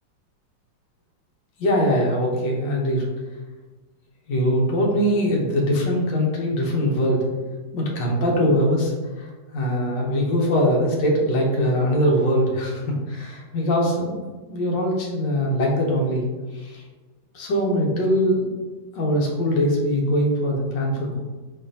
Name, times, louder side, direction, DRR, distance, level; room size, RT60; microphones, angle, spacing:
voice 1, 1.6-3.1 4.3-7.2 7.7-9.3 9.5-14.2 14.5-16.3 16.5-16.8 17.3-18.5 19.0-21.2, equal, 75° left, -1 dB, 1.4 m, -22 dB
4.2 x 3.2 x 2.6 m, 1.3 s
omnidirectional pair, 2.0 m